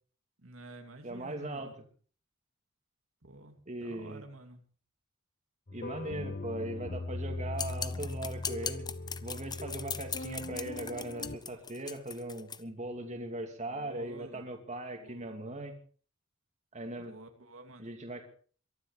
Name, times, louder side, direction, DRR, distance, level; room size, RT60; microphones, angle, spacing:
voice 1, 0.4-1.7 3.2-4.6 13.7-14.4 15.0-15.2 17.0-17.9, right 2 dB, 80° right, 4 dB, 2.8 m, -50 dB
voice 2, 1.0-1.8 3.7-4.2 5.7-8.9 9.2-15.7 16.7-17.1 17.8-18.3, right 1 dB, 35° right, 4 dB, 2.7 m, -39 dB
sound 1, 5.7-11.4, left 2 dB, 50° left, 0.9 m, -39 dB
sound 2, 7.6-12.6, left 6 dB, 20° left, 0.8 m, -39 dB
23.0 x 11.5 x 5.1 m, 0.43 s
head